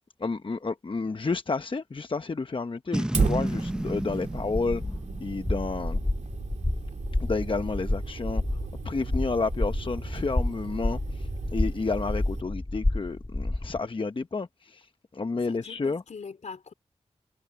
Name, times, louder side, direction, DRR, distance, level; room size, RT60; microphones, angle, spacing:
voice 1, 0.2-4.8 5.2-6.0 7.2-8.4 8.8-14.9 15.1-16.0, left 4 dB, 45° left, 0.9 m, -30 dB
Boom, 2.9-6.3, right 1 dB, 5° right, 0.7 m, -32 dB
Fire, 3.1-12.4, right 5 dB, 80° right, 2.7 m, -35 dB
sound 1, 4.4-13.8, left 2 dB, 25° left, 2.2 m, -30 dB
voice 2, 15.3-16.7, left 5 dB, 75° left, 3.2 m, -43 dB
cardioid pair, 40°, 12 cm